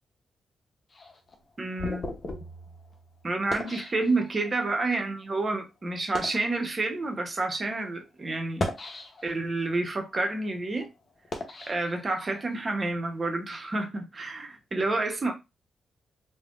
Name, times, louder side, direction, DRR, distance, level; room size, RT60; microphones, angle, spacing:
sound 1, 0.9-4.6 5.3-5.5 6.0-6.5 7.3-7.5 8.4-9.5 10.0-12.5, left 2 dB, 45° left, 0.8 m, -37 dB
voice 1, 1.6-2.1 3.2-8.6 9.2-10.9 11.7-15.3, right 2 dB, 40° right, 0.8 m, -29 dB
3.3 x 2.2 x 2.4 m
hypercardioid pair, 40°, 0 cm